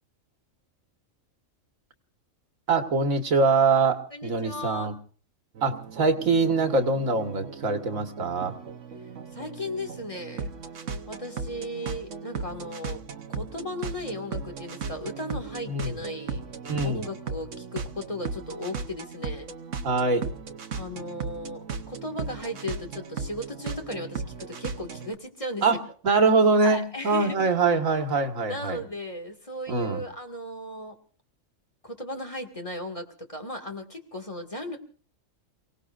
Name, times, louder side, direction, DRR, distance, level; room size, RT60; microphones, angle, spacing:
voice 1, 2.7-4.9 5.6-8.6 15.7-15.9 16.6-17.0 19.8-20.3 25.6-25.8 26.0-28.8 29.7-30.0, right 4 dB, 85° right, 6 dB, 2.1 m, -23 dB
voice 2, 4.1-5.0 9.3-10.5 11.1-13.0 13.3-16.4 16.8-19.5 20.8-25.8 26.6-27.5 28.5-31.0 31.8-34.8, left 1 dB, 25° left, 4 dB, 2.2 m, -36 dB
sound 1, 5.5-25.2, right 5 dB, 65° right, 1.4 m, -37 dB
29.5 x 18.0 x 2.5 m, 0.41 s
omnidirectional pair, 1.4 m